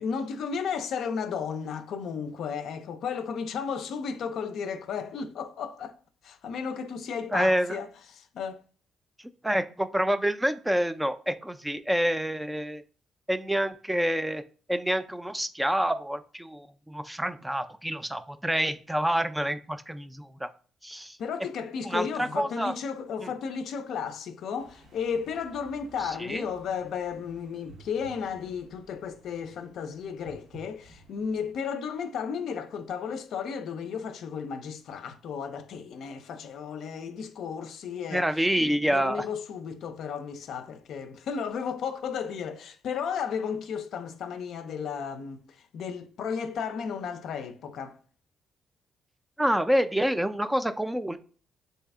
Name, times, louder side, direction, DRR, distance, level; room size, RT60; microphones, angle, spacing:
voice 1, 0.0-6.0 6.2-8.6 21.0-38.3 38.6-48.0, left 6 dB, 75° left, 0.4 m, -34 dB
voice 2, 7.3-7.8 9.4-12.8 13.3-14.4 14.7-20.5 20.8-21.2 21.8-22.7 23.2-23.3 26.2-26.4 38.1-39.2 49.4-51.2, equal, 5° right, 0.3 m, -27 dB
sound 1, 24.6-31.5, right 2 dB, 75° right, 0.8 m, -54 dB
3.2 x 2.8 x 3.4 m
cardioid pair, 90°, 0 cm